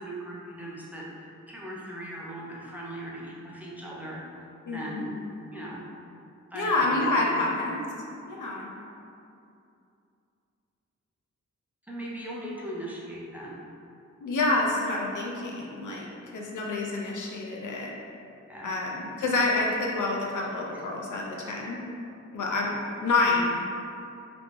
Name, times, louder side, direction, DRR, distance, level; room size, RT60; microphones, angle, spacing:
voice 1, 0.0-4.5 4.7-5.2 5.5-5.8 6.5-7.4 11.9-13.6 18.5-18.7 20.7-20.9 21.4-21.7 22.6-22.8, right 1 dB, 5° right, -5 dB, 0.4 m, -39 dB
voice 2, 4.7-5.1 6.5-7.8 8.3-8.7 14.2-16.1 16.3-17.9 18.6-21.8 22.3-23.7, left 2 dB, 80° left, -2 dB, 0.5 m, -28 dB
3.1 x 2.6 x 3.1 m, 2.6 s
wide cardioid pair, 125°, 30 cm